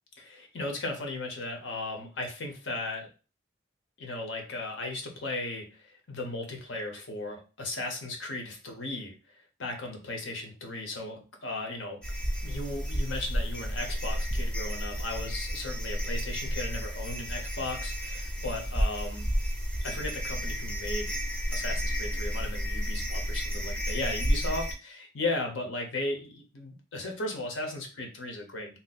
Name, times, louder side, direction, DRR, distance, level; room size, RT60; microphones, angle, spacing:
voice 1, 0.2-3.1 4.0-9.1 9.6-12.0 12.4-19.3 19.8-21.1 21.5-28.8, left 2 dB, 80° left, 2 dB, 0.8 m, -36 dB
sound 1, 12.0-24.7, equal, 5° left, 0.5 m, -31 dB
2.7 x 2.0 x 4.0 m, 0.33 s
head